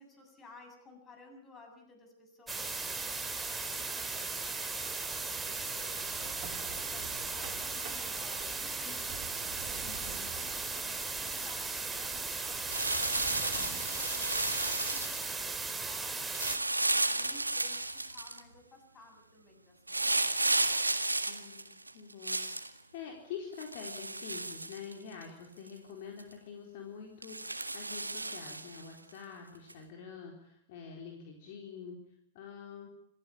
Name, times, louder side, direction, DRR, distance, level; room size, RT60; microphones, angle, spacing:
voice 1, 0.0-6.0 6.6-9.9 10.3-12.6 12.9-20.4, left 2 dB, 20° left, 5 dB, 7.3 m, -56 dB
sound 1, 2.5-16.6, right 3 dB, 10° right, 2.3 m, -37 dB
sound 2, 4.7-15.0, right 8 dB, 35° right, 3.3 m, -49 dB
voice 2, 9.8-10.3 21.3-22.4 22.9-32.0 32.3-32.9, left 6 dB, 45° left, 2 dB, 4.1 m, -46 dB
sound 3, 12.7-15.3 16.3-18.4 19.9-22.7 23.6-25.2 25.7-25.8 26.2-26.3 27.2-28.8 29.7-29.8, right 2 dB, 85° right, 1.8 m, -33 dB
27.0 x 15.5 x 8.8 m, 0.73 s
figure-of-eight pair, 105°, 0 cm